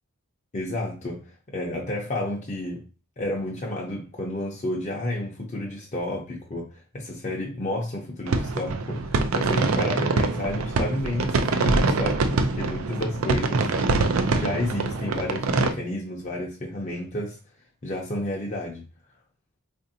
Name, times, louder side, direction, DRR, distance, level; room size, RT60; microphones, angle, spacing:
voice 1, 0.5-2.8 3.2-13.7 14.2-17.4 17.8-18.8, left 1 dB, 35° left, -1 dB, 0.6 m, -31 dB
sound 1, 8.3-15.7, right 3 dB, 85° right, 0.5 m, -24 dB
4.2 x 2.6 x 2.7 m, 0.33 s
head